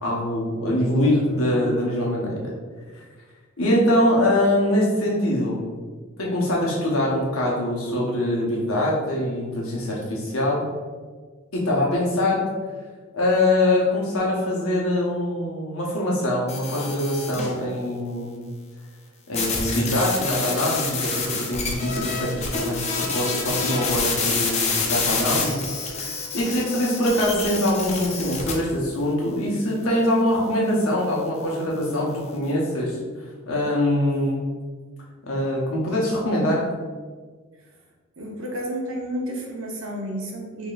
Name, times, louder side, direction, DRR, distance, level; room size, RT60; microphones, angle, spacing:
voice 1, 0.0-2.5 2.9-3.0 3.6-5.6 6.2-10.6 11.5-12.5 13.1-18.4 19.3-25.6 26.0-33.0 33.5-34.4 35.3-36.7, left 1 dB, 75° left, -3 dB, 1.0 m, -23 dB
sound 1, 16.5-17.6 19.3-28.5, left 4 dB, 30° left, 0.5 m, -27 dB
voice 2, 38.2-40.7, equal, 65° right, 0 dB, 0.7 m, -31 dB
4.9 x 2.9 x 2.4 m, 1.5 s
head